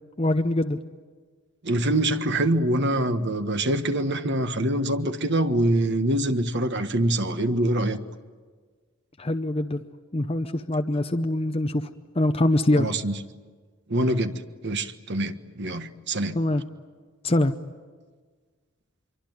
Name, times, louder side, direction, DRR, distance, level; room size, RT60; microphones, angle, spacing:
voice 1, 0.2-0.8 9.2-9.8 10.1-11.9 12.1-12.9 16.3-16.6 17.2-17.5, left 1 dB, 30° left, 7 dB, 0.8 m, -23 dB
voice 2, 1.6-8.0 12.8-13.2 13.9-14.3 14.6-16.4, right 1 dB, 55° right, 8 dB, 1.4 m, -24 dB
24.5 x 24.5 x 9.4 m, 1.5 s
head